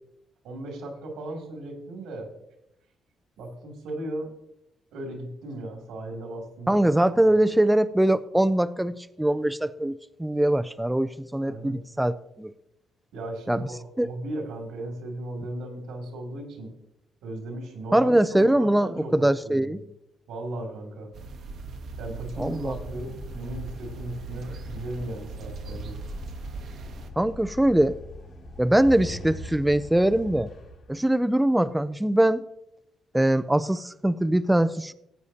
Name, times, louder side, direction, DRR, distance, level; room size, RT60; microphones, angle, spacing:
voice 1, 0.4-2.3 3.4-4.3 4.9-6.7 7.3-7.4 11.4-11.8 13.1-16.8 17.2-19.8 20.3-21.2 22.0-26.0, right 1 dB, 90° right, 2 dB, 2.7 m, -36 dB
voice 2, 6.7-12.5 13.5-13.6 14.0-14.1 17.9-19.8 22.4-22.8 27.2-28.0 28.6-30.5 30.9-32.4 33.1-34.9, right 1 dB, 5° right, 12 dB, 0.4 m, -22 dB
sound 1, 21.1-27.1, right 4 dB, 65° right, 1.0 m, -39 dB
sound 2, 22.4-31.5, left 1 dB, 75° left, 4.1 m, -42 dB
15.5 x 8.2 x 2.8 m, 0.81 s
cardioid pair, 90°, 0 cm